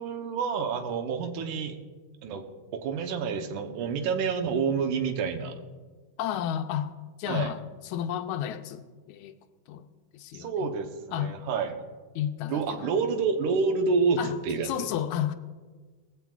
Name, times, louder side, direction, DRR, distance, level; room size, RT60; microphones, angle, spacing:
voice 1, 0.0-1.7 2.2-2.4 2.7-5.6 7.3-7.5 10.3-11.8 12.5-14.9, right 5 dB, 85° right, 2.4 m, -28 dB
voice 2, 6.2-6.9 7.2-9.4 9.7-9.9 10.1-10.7 11.1-11.3 12.2-12.9 14.2-14.4 14.6-15.3, left 10 dB, 80° left, 2.0 m, -32 dB
19.5 x 15.0 x 2.4 m
omnidirectional pair, 3.5 m